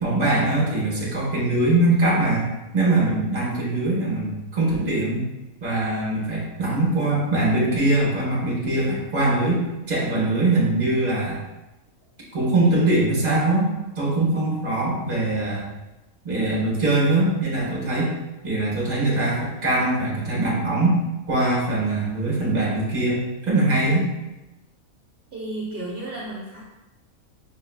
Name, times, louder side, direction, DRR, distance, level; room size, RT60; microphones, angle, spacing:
voice 1, 0.0-5.2 5.6-9.6 9.9-11.4 12.3-13.7 14.0-15.7 16.2-18.1 18.4-21.0 21.3-24.1, right 2 dB, 30° right, -5 dB, 1.3 m, -22 dB
voice 2, 25.3-26.6, right 2 dB, 50° right, -6 dB, 0.9 m, -32 dB
5.8 x 2.8 x 2.3 m, 1.0 s
omnidirectional pair, 1.5 m